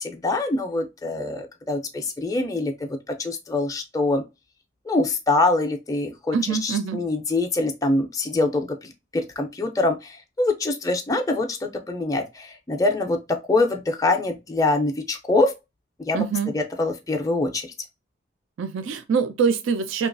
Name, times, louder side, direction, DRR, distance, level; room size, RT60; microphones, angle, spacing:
voice 1, 0.0-4.2 4.9-8.7 9.1-13.2 13.5-15.5 16.0-16.2 16.5-17.7, left 2 dB, 15° left, 0.4 m, -24 dB
voice 2, 6.3-7.0 16.1-16.5 18.6-20.1, right 6 dB, 80° right, 0.4 m, -24 dB
2.8 x 2.3 x 2.4 m
head